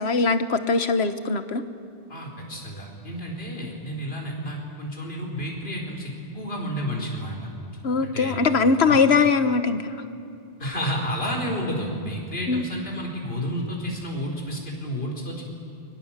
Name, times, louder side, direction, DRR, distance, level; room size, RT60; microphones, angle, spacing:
voice 1, 0.0-1.6 7.8-9.8 12.5-12.6, left 4 dB, 85° left, 10 dB, 1.4 m, -21 dB
voice 2, 2.1-7.5 8.0-8.4 8.9-9.0 10.6-15.4, equal, 70° left, 0 dB, 4.9 m, -31 dB
29.5 x 23.5 x 7.4 m, 2.5 s
omnidirectional pair, 1.0 m